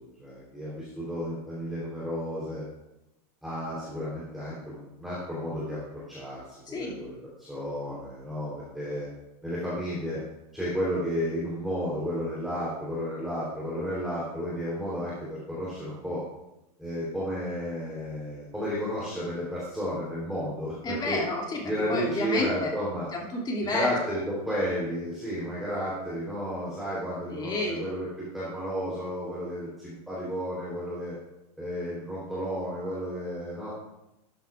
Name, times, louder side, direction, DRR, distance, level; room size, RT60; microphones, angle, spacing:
voice 1, 0.0-2.6 3.4-6.4 6.7-9.1 9.4-10.2 10.5-16.2 16.8-21.2 21.6-23.1 23.7-31.1 31.6-33.7, equal, ahead, -8 dB, 3.4 m, -32 dB
voice 2, 20.8-21.6 21.9-22.7 23.1-23.9 27.3-27.8, left 2 dB, 20° left, -2 dB, 2.5 m, -30 dB
12.5 x 9.2 x 2.4 m, 0.92 s
supercardioid pair, 140°, 21 cm